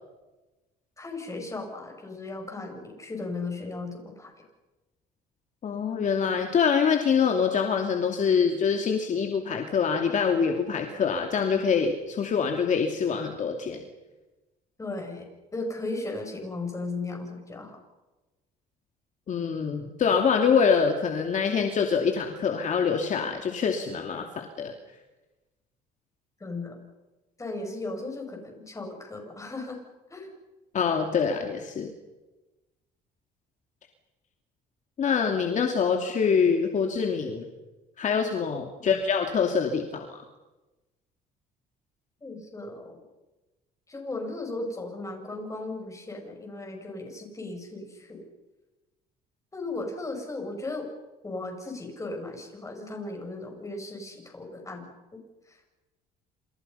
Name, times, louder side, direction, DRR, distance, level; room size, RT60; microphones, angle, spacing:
voice 1, 1.0-4.3 14.8-15.3 15.5-17.8 26.4-26.8 27.4-29.8 30.1-30.3 38.8-39.0 42.2-43.0 43.9-48.3 49.5-50.9 51.2-55.2 55.5-55.7, left 2 dB, 20° left, 3 dB, 7.7 m, -36 dB
voice 2, 5.6-13.8 19.3-24.7 30.7-31.9 35.0-37.5 38.0-40.2, left 6 dB, 45° left, 3 dB, 2.8 m, -25 dB
28.5 x 28.0 x 5.8 m, 1.1 s
cardioid pair, 110°, 17 cm